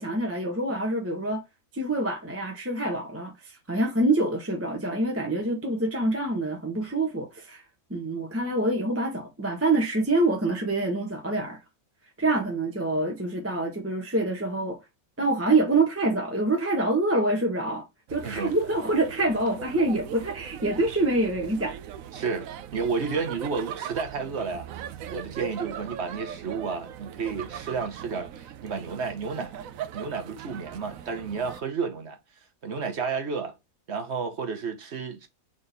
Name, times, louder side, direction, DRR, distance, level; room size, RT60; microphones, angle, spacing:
voice 1, 0.0-1.4 1.7-7.6 7.9-11.6 12.2-14.8 15.2-21.8, right 2 dB, 10° right, 0.8 m, -26 dB
sound 1, 18.1-31.6, right 9 dB, 70° right, 1.0 m, -40 dB
voice 2, 22.1-24.7 25.1-29.6 29.9-32.2 32.6-33.5 33.9-35.3, right 5 dB, 50° right, 1.2 m, -31 dB
4.1 x 3.7 x 3.3 m
omnidirectional pair, 1.5 m